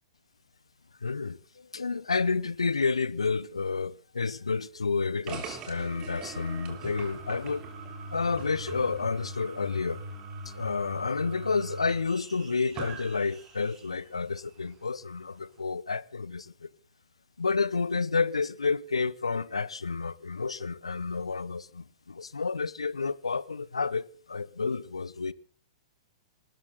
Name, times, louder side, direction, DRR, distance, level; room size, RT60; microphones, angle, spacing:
voice 1, 1.0-7.6 8.1-10.0 10.5-16.7 17.4-25.3, left 4 dB, 75° left, 0.9 m, -30 dB
sound 1, 5.3-14.0, right 3 dB, 30° right, 3.3 m, -41 dB
27.0 x 13.0 x 3.9 m
figure-of-eight pair, 105°, 3 cm